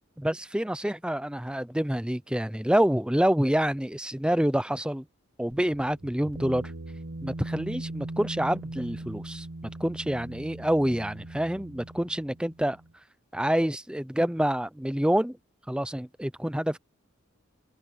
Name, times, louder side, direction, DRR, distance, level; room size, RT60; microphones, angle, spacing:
voice 1, 0.2-5.1 5.4-6.7 7.2-9.5 9.8-12.8 13.3-15.4 15.7-16.8, equal, 5° right, 0.6 m, -27 dB
sound 1, 5.5-12.9, right 2 dB, 85° right, 1.3 m, -40 dB
open air
head